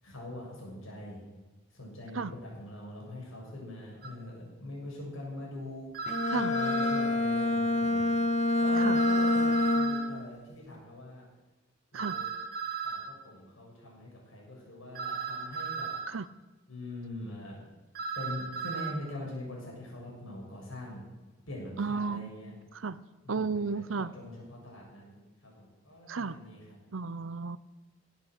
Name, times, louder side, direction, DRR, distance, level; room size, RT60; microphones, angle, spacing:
voice 1, 0.0-1.2 1.7-5.9 6.3-8.0 8.6-11.2 11.9-12.3 12.8-15.9 16.7-17.6 18.2-21.0 21.5-22.5 23.2-26.8, left 1 dB, 75° left, -3 dB, 7.2 m, -43 dB
sound 1, 4.0-4.1 5.9-7.1 8.9-10.1 11.9-13.1 14.9-16.1 17.9-18.9, right 6 dB, 45° right, 2.3 m, -36 dB
Bowed string instrument, 6.1-10.2, left 2 dB, 35° left, 1.2 m, -27 dB
voice 2, 21.8-23.0 23.3-24.1 26.1-26.4 26.9-27.6, right 4 dB, 75° right, 16 dB, 0.7 m, -33 dB
17.5 x 9.0 x 8.2 m, 1.1 s
head